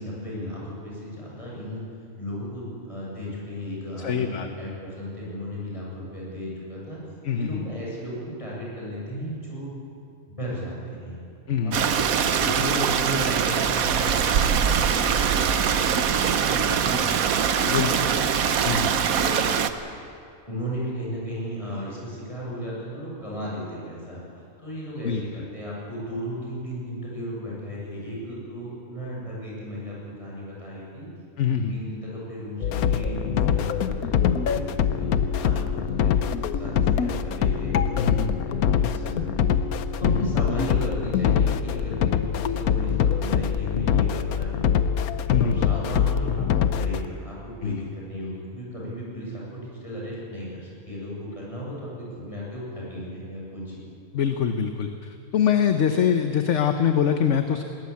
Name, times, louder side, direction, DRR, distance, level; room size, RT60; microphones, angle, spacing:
voice 1, 0.0-1.8 2.2-7.0 7.3-9.7 10.4-11.2 11.6-18.2 19.1-19.4 20.5-24.2 24.6-31.1 31.5-39.6 40.0-53.8, equal, 20° left, -5 dB, 7.4 m, -35 dB
voice 2, 4.0-4.5 7.2-7.6 11.5-11.9 17.7-17.9 18.6-19.0 25.0-25.2 31.4-31.8 38.0-38.4 40.0-40.3 45.3-45.6 47.6-47.8 54.1-57.6, left 7 dB, 60° left, 7 dB, 1.2 m, -24 dB
Stream, 11.7-19.7, right 7 dB, 75° right, 1.4 m, -23 dB
sound 1, 32.6-47.1, left 8 dB, 80° left, 1.3 m, -24 dB
20.0 x 19.0 x 8.5 m, 2.6 s
omnidirectional pair, 1.5 m